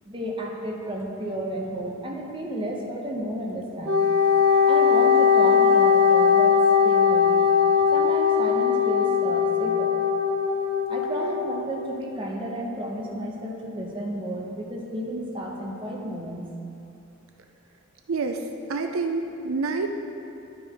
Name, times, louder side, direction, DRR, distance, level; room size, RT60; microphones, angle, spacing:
voice 1, 0.0-4.1 4.7-7.5 7.9-10.0 10.9-16.4, right 1 dB, 25° right, -1 dB, 0.9 m, -32 dB
Wind instrument woodwind instrument, 3.9-11.6, left 6 dB, 65° right, 1.1 m, -20 dB
voice 2, 18.1-18.4 18.7-19.9, right 4 dB, 80° right, 5 dB, 0.5 m, -27 dB
9.9 x 4.6 x 5.0 m, 2.7 s
head